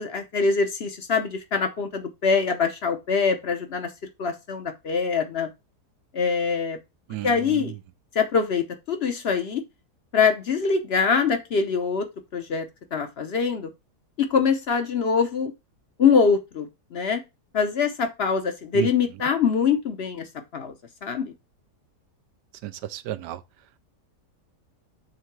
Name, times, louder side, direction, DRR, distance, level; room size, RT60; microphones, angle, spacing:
voice 1, 0.0-3.9 4.2-5.5 6.1-6.8 7.2-7.7 8.1-9.6 10.1-12.1 12.3-12.7 12.9-13.7 14.2-15.5 16.0-17.2 17.5-20.3 20.5-20.7 21.0-21.3, left 5 dB, 55° left, 0.7 m, -23 dB
voice 2, 7.1-7.7 18.7-18.9 22.6-23.4, right 14 dB, 80° right, 1.2 m, -32 dB
6.5 x 3.7 x 4.5 m
omnidirectional pair, 1.8 m